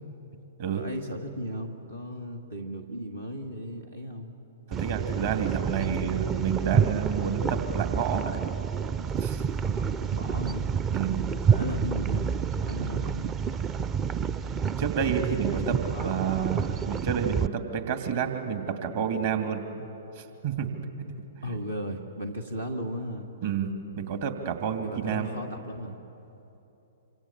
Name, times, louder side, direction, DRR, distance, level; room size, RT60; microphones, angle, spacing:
voice 1, 0.7-4.3 9.7-10.7 11.3-13.4 15.6-16.4 21.4-23.3 24.8-26.0, equal, 85° right, 2 dB, 2.0 m, -36 dB
sound 1, 4.7-17.5, right 7 dB, 20° right, 0.5 m, -28 dB
voice 2, 4.7-8.4 9.2-9.5 10.9-11.3 14.8-19.9 20.2-20.7 21.5-21.6 23.4-25.3, right 7 dB, 50° right, 5 dB, 2.6 m, -30 dB
27.0 x 26.5 x 7.5 m, 3.0 s
figure-of-eight pair, 110°, 0 cm